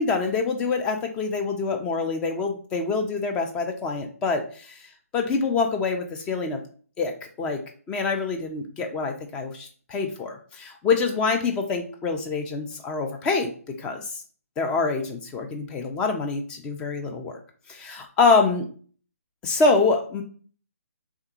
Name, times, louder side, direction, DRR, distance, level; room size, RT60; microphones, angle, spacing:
voice 1, 0.0-4.8 5.1-6.6 7.0-14.0 14.6-17.4 17.7-18.7 19.4-20.2, left 4 dB, 10° left, 4 dB, 0.4 m, -25 dB
3.5 x 3.3 x 2.9 m, 0.43 s
figure-of-eight pair, 155°, 8 cm